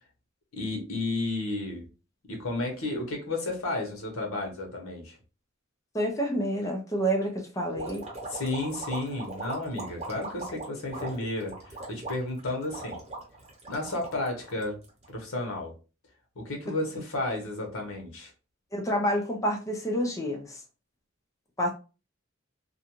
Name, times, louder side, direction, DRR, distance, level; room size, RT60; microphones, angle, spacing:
voice 1, 0.5-1.8 2.3-5.2 8.3-13.0 13.7-14.8 15.1-15.7 16.4-18.3, left 2 dB, 85° left, 0.9 m, -32 dB
voice 2, 5.9-8.0 18.7-20.6 21.6-21.7, equal, 15° left, 0.5 m, -28 dB
sound 1, 7.7-15.1, right 2 dB, 30° right, 0.9 m, -39 dB
2.5 x 2.2 x 2.9 m
head